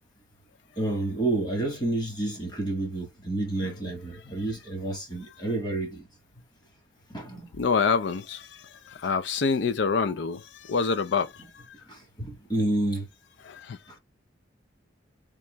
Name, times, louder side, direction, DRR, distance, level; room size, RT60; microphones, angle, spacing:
voice 1, 0.8-6.1 7.1-7.5 11.9-13.1, right 2 dB, 25° left, 1.4 m, -29 dB
voice 2, 7.5-11.6 13.4-13.8, left 5 dB, 70° left, 0.4 m, -27 dB
3.6 x 2.9 x 3.3 m
head